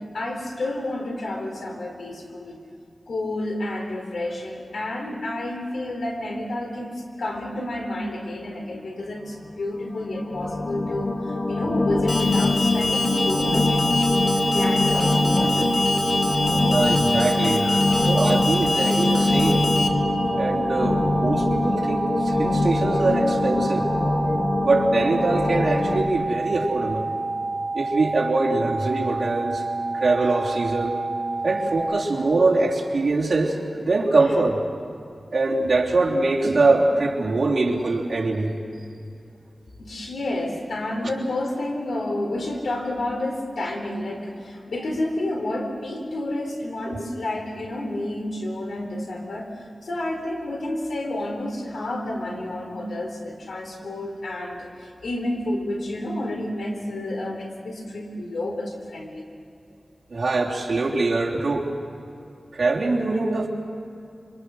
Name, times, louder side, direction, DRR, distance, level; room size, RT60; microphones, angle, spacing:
voice 1, 0.0-2.6 3.1-11.1 11.5-15.9 17.3-18.1 39.8-49.5 49.8-59.2, left 1 dB, 90° left, 3 dB, 3.7 m, -30 dB
sound 1, 9.7-26.0, left 2 dB, 50° left, 2.0 m, -23 dB
Alarm, 12.1-19.9, left 3 dB, 70° left, 2.0 m, -27 dB
sound 2, 12.9-31.8, right 3 dB, 25° right, 6.0 m, -29 dB
voice 2, 16.6-17.6 18.1-19.7 20.3-23.9 24.6-27.1 27.7-29.6 29.9-31.0 31.4-34.6 35.3-38.5 46.8-47.0 60.1-61.7 62.5-63.5, right 3 dB, 65° right, -3 dB, 3.3 m, -23 dB
26.5 x 25.5 x 6.3 m, 2.5 s
wide cardioid pair, 65°, 0 cm